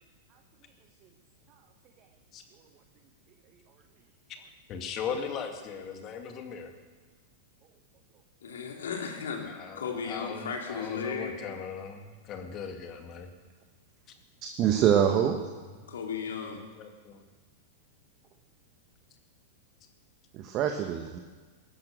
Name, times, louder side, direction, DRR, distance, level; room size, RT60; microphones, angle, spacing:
voice 1, 4.7-6.7 9.5-13.3 15.8-15.9 16.6-17.2, left 6 dB, 35° left, 4 dB, 2.1 m, -38 dB
voice 2, 8.4-11.3 15.9-16.7, left 6 dB, 70° left, 1 dB, 3.1 m, -35 dB
voice 3, 14.4-15.4 20.3-21.2, right 9 dB, 40° right, 5 dB, 1.4 m, -25 dB
19.5 x 11.0 x 6.8 m, 1.4 s
figure-of-eight pair, 100°, 0 cm